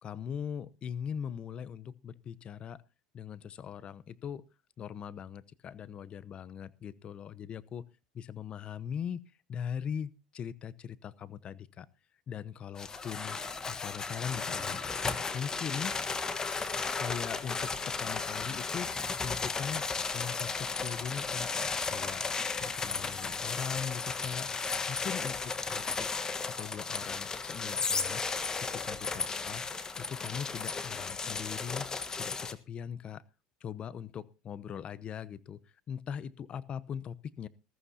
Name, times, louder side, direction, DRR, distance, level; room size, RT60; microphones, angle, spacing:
voice 1, 0.0-2.8 3.1-4.4 4.8-7.9 8.1-9.2 9.5-11.9 12.3-13.4 13.7-14.8 15.3-15.9 17.0-19.8 20.1-21.5 21.9-22.3 22.6-24.5 24.9-26.1 26.5-28.2 28.6-29.6 30.0-31.9 32.2-33.2 33.6-35.6 35.9-37.5, left 8 dB, 40° left, 17 dB, 0.8 m, -40 dB
sound 1, 12.8-32.5, left 4 dB, 20° left, 1.3 m, -34 dB
20.0 x 14.0 x 2.8 m, 0.30 s
supercardioid pair, 100°, 3 cm